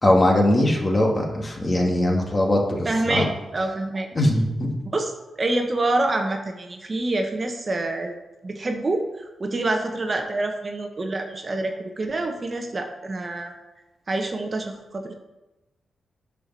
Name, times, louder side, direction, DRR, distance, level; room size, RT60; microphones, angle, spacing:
voice 1, 0.0-3.3 4.2-4.7, left 1 dB, 25° left, 0 dB, 1.9 m, -20 dB
voice 2, 2.8-4.1 4.9-5.1 5.4-8.1 8.4-13.5 14.1-15.1, right 2 dB, 35° right, 4 dB, 1.1 m, -26 dB
8.9 x 4.9 x 6.0 m, 1.0 s
cardioid pair, 70°, 0 cm